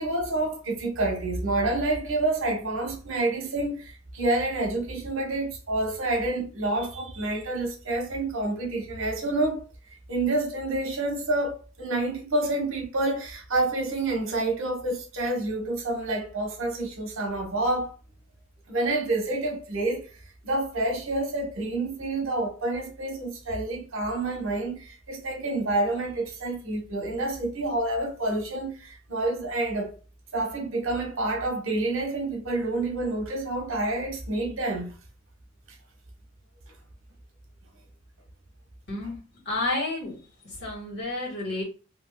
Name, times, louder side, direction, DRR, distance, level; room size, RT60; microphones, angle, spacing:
voice 1, 0.0-9.7 10.1-17.9 18.7-20.1 20.4-29.9 30.3-34.9, right 2 dB, 80° right, 1.0 m, -28 dB
voice 2, 38.9-39.2 39.4-40.2 40.4-41.6, left 2 dB, 55° left, 1.6 m, -30 dB
3.4 x 2.9 x 2.3 m
head